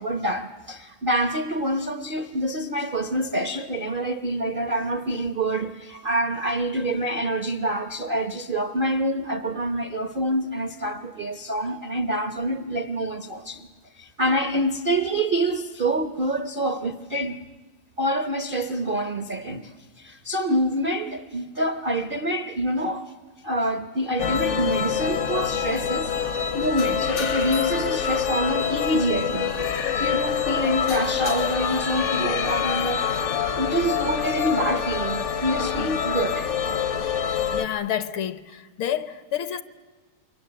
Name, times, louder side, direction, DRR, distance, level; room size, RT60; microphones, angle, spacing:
voice 1, 0.0-13.7 14.0-17.4 18.0-19.7 20.0-23.1 23.4-26.2 26.5-29.5 29.9-33.2 33.5-36.5, right 1 dB, 60° right, 0.5 m, -26 dB
sound 1, 24.2-37.7, left 7 dB, 55° left, 0.8 m, -26 dB
voice 2, 37.5-39.6, left 10 dB, 75° left, 1.8 m, -29 dB
27.5 x 23.5 x 7.8 m
omnidirectional pair, 2.3 m